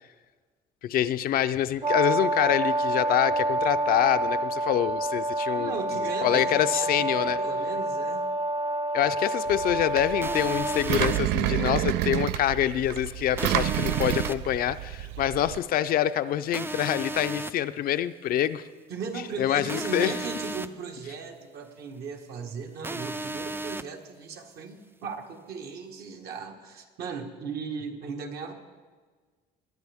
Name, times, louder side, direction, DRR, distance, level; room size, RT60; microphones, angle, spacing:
voice 1, 0.8-5.8 6.2-7.4 8.9-18.6 19.4-20.1, left 11 dB, 60° left, 12 dB, 0.5 m, -26 dB
Brass instrument, 1.8-10.8, right 1 dB, 30° right, 0.7 m, -28 dB
voice 2, 5.6-8.3 18.9-28.5, right 5 dB, 70° right, 3 dB, 1.7 m, -37 dB
Engine, 9.5-15.6, right 14 dB, 85° right, 0.4 m, -29 dB
sound 1, 10.2-11.2 13.4-14.3 16.5-17.5 19.7-20.7 22.8-23.8, right 2 dB, 15° right, 0.4 m, -34 dB
21.5 x 10.5 x 3.6 m, 1.4 s
cardioid pair, 110°, 17 cm